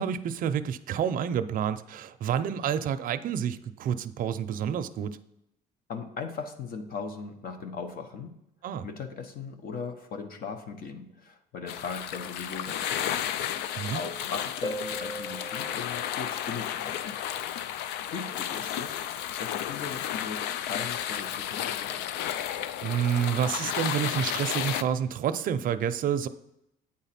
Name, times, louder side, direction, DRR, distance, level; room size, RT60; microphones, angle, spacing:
voice 1, 0.0-5.2 8.6-8.9 13.8-14.0 22.8-26.3, right 8 dB, 55° right, 10 dB, 0.5 m, -29 dB
voice 2, 5.9-8.4 8.8-13.1 13.9-17.1 18.1-22.0, left 5 dB, 60° left, 6 dB, 1.0 m, -39 dB
sound 1, 11.7-24.8, left 10 dB, 90° left, 0.4 m, -33 dB
Harp, 14.6-17.1 20.6-20.7, right 1 dB, 25° left, 1.0 m, -39 dB
8.7 x 4.0 x 5.8 m, 0.81 s
cardioid pair, 110°, 17 cm